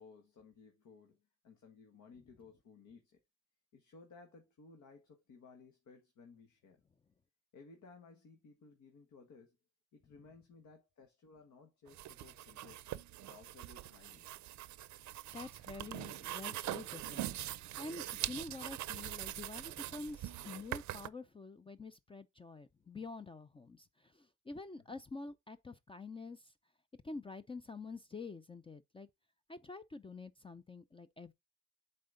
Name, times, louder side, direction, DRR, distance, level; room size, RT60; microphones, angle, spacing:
voice 1, 0.0-3.2 3.7-6.8 7.5-9.6 9.9-14.4 24.9-25.0, left 4 dB, 75° left, 1.6 m, -59 dB
sound 1, 11.9-21.1, right 14 dB, 70° right, 0.5 m, -43 dB
voice 2, 15.3-17.3 17.8-26.5 27.0-29.1 29.5-31.3, left 3 dB, 20° left, 0.4 m, -47 dB
7.6 x 4.3 x 3.8 m
cardioid pair, 90°, 30 cm